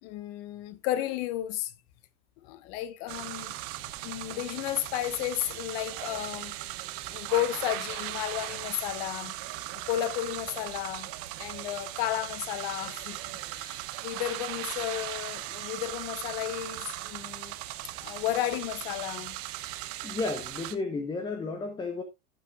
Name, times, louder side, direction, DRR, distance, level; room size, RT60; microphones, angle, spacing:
voice 1, 0.0-1.7 2.4-3.5 3.8-6.6 7.1-9.3 9.7-11.1 11.4-13.2 13.5-17.6 18.0-19.4, left 13 dB, 40° left, 1.0 m, -33 dB
sound 1, 3.1-20.8, right 16 dB, 30° right, 0.8 m, -38 dB
voice 2, 20.0-22.0, left 3 dB, 10° left, 0.8 m, -32 dB
12.5 x 8.6 x 2.4 m
hypercardioid pair, 130°, 45 cm